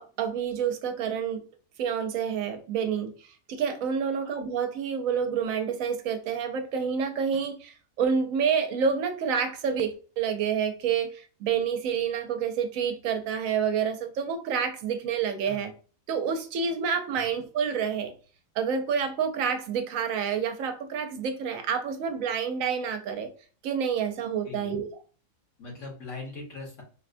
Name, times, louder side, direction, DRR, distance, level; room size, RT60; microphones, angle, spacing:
voice 1, 0.0-1.4 1.8-3.1 3.5-15.7 16.1-18.1 18.6-23.3 23.6-24.9, right 7 dB, 80° right, 1.0 m, -28 dB
voice 2, 24.4-24.8 25.6-26.8, left 3 dB, 65° left, 1.5 m, -41 dB
4.6 x 2.1 x 2.5 m
omnidirectional pair, 1.4 m